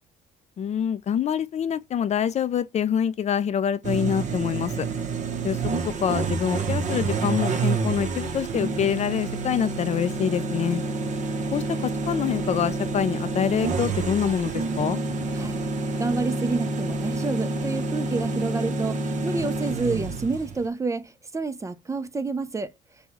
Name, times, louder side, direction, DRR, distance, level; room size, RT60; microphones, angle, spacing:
voice 1, 0.6-4.9 5.4-5.6 5.9-10.8 11.5-15.0, left 8 dB, 40° left, 0.4 m, -26 dB
sound 1, 3.8-20.7, right 3 dB, 45° right, 1.0 m, -28 dB
voice 2, 16.0-22.7, right 3 dB, 20° right, 0.6 m, -29 dB
5.4 x 2.3 x 4.2 m
cardioid pair, 110°, 17 cm